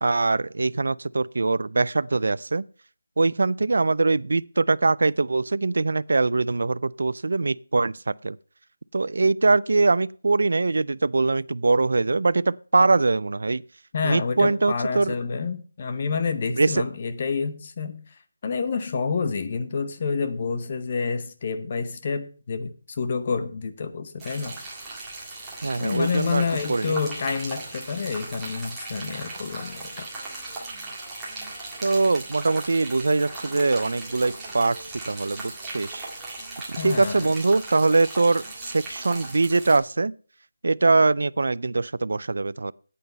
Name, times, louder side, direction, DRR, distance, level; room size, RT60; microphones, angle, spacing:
voice 1, 0.0-2.7 3.2-8.4 8.9-13.6 14.0-15.1 16.6-16.8 25.6-27.0 31.8-36.1 36.7-40.1 40.6-42.7, right 3 dB, 60° right, 0.4 m, -22 dB
voice 2, 13.9-18.0 18.4-24.6 25.8-30.1 36.8-37.3, left 5 dB, 25° left, 0.9 m, -28 dB
sound 1, 24.2-39.8, right 2 dB, 5° right, 1.9 m, -38 dB
9.2 x 8.4 x 5.4 m
figure-of-eight pair, 175°, 0 cm